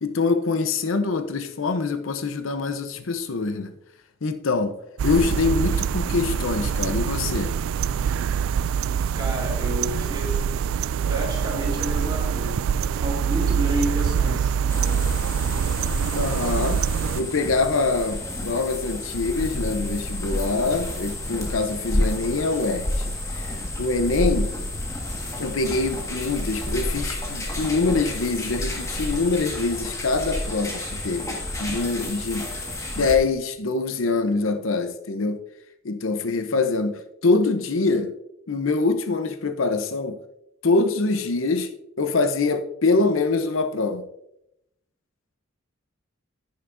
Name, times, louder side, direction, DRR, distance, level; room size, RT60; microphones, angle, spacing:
voice 1, 0.0-3.7 4.2-4.8 5.0-7.5 16.1-16.8 17.2-24.5 25.4-32.5 32.9-35.4 35.8-38.1 38.5-40.2 40.6-41.7 42.0-44.0, left 3 dB, 85° left, 0.7 m, -24 dB
sound 1, 5.0-17.2, right 7 dB, 90° right, 0.3 m, -24 dB
voice 2, 9.1-10.5 11.1-14.6, equal, 20° right, 2.3 m, -31 dB
sound 2, 14.7-33.2, left 1 dB, 15° left, 1.6 m, -30 dB
10.5 x 10.5 x 2.6 m
head